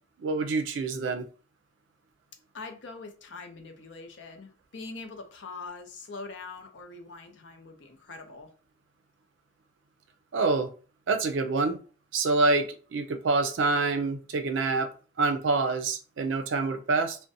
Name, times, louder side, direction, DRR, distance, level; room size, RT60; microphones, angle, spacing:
voice 1, 0.2-1.2 10.3-10.7 11.1-11.8 12.1-14.9 15.2-17.2, right 3 dB, 85° right, 0.4 m, -26 dB
voice 2, 2.5-8.5, left 3 dB, 70° left, 0.5 m, -43 dB
2.5 x 2.1 x 2.6 m
head